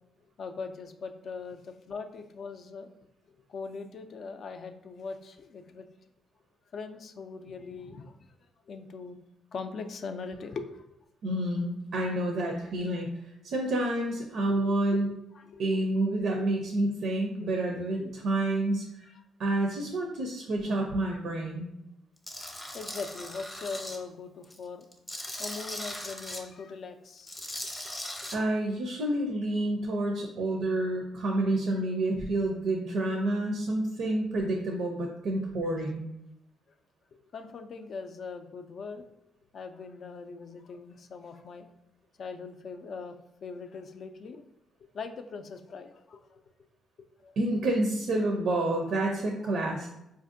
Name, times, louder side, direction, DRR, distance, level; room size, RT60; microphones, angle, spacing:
voice 1, 0.4-2.9 3.5-5.9 6.7-8.1 8.7-9.2 9.5-10.9 14.5-15.6 17.4-18.1 22.7-24.9 25.4-27.4 37.1-39.1 39.5-41.7 42.2-43.2 43.4-44.4 44.8-46.4 47.2-47.4 49.5-49.6, left 4 dB, 55° left, 7 dB, 0.3 m, -41 dB
voice 2, 11.2-13.1 13.4-15.1 15.6-19.1 19.4-21.7 28.3-36.0 47.4-49.9, right 1 dB, 70° right, 1 dB, 0.5 m, -29 dB
Tools, 22.3-24.0 24.4-26.4 27.2-28.4, left 1 dB, 15° left, 0.6 m, -39 dB
4.2 x 2.5 x 2.5 m, 0.85 s
cardioid pair, 90°, 0 cm